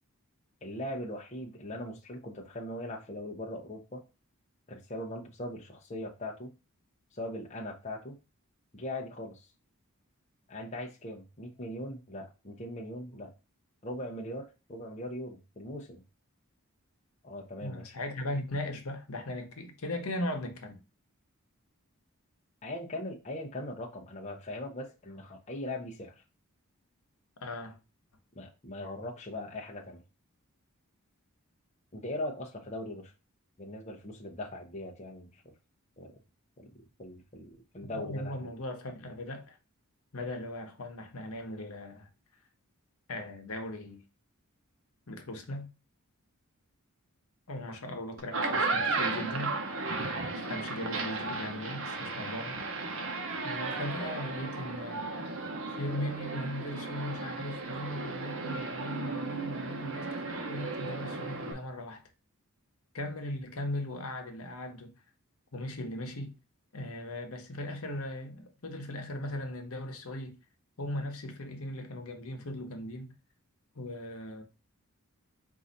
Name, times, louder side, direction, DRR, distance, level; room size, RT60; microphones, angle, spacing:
voice 1, 0.6-4.0 4.7-6.5 7.1-8.2 8.7-9.5 10.5-13.3 13.8-16.0 17.2-17.8 22.6-26.1 28.3-30.0 31.9-33.1 33.6-35.5 36.0-36.2 36.6-38.5, left 1 dB, 30° left, 0.8 m, -40 dB
voice 2, 17.6-20.8 27.4-27.8 37.8-39.6 40.1-42.1 43.1-44.0 45.1-45.7 47.5-49.6 50.4-52.6 53.4-55.1 55.7-62.0 62.9-64.9 65.5-66.3 66.7-70.4 70.8-73.1 73.7-74.4, left 1 dB, 75° left, 1.0 m, -38 dB
sound 1, 48.2-61.5, right 3 dB, 60° right, 0.9 m, -35 dB
4.7 x 2.6 x 4.0 m
head